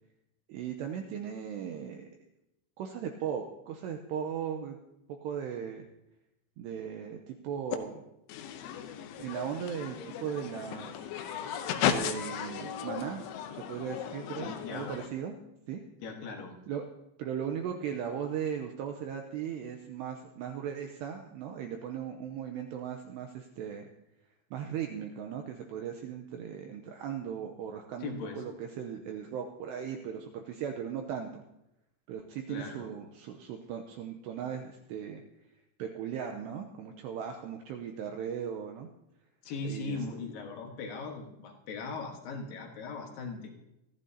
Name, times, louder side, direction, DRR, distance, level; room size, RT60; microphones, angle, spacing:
voice 1, 0.5-2.2 2.8-4.8 5.1-5.9 6.6-8.0 9.2-11.1 11.7-13.2 13.5-15.3 15.7-15.8 16.7-16.8 17.2-23.9 24.5-31.4 32.1-35.2 35.8-38.9 39.6-40.0, right 8 dB, 85° right, 4 dB, 2.4 m, -37 dB
sound 1, 7.7-7.8 8.3-15.1, left 9 dB, 80° left, 3.1 m, -35 dB
voice 2, 14.4-14.9 16.0-16.5 28.0-28.4 32.5-32.9 39.4-43.5, left 4 dB, 65° left, 2 dB, 2.5 m, -39 dB
24.0 x 14.0 x 2.8 m, 0.88 s
omnidirectional pair, 5.8 m